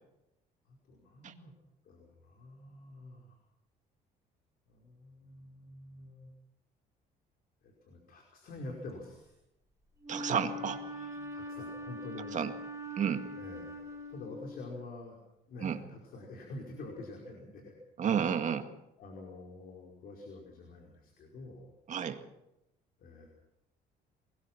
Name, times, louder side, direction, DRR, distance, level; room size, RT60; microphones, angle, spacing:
voice 1, 0.7-1.5 1.8-3.4 4.7-6.3 7.6-9.3 11.3-12.4 13.3-15.2 15.5-17.7 19.0-21.7 23.0-23.3, left 2 dB, 60° left, 0 dB, 5.1 m, -47 dB
Wind instrument woodwind instrument, 10.0-14.8, left 1 dB, 20° right, 5.0 m, -42 dB
voice 2, 10.1-11.3 12.3-12.5 13.0-13.3 15.6-15.8 18.0-18.7 21.9-22.2, right 8 dB, 45° right, 7 dB, 2.1 m, -32 dB
24.0 x 20.5 x 6.1 m, 0.87 s
cardioid pair, 110°, 17 cm